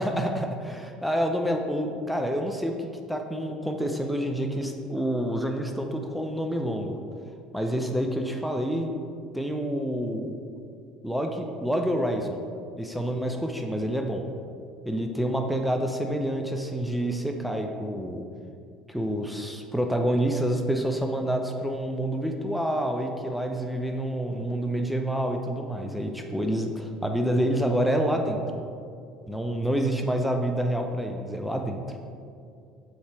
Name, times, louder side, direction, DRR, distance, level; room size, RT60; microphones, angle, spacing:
voice 1, 0.0-7.0 7.5-8.9 9.3-10.4 11.0-12.4 12.8-14.3 14.9-18.2 18.9-28.4 29.3-31.8, equal, ahead, 3 dB, 0.6 m, -28 dB
7.9 x 3.3 x 4.7 m, 2.4 s
hypercardioid pair, 65°, 3 cm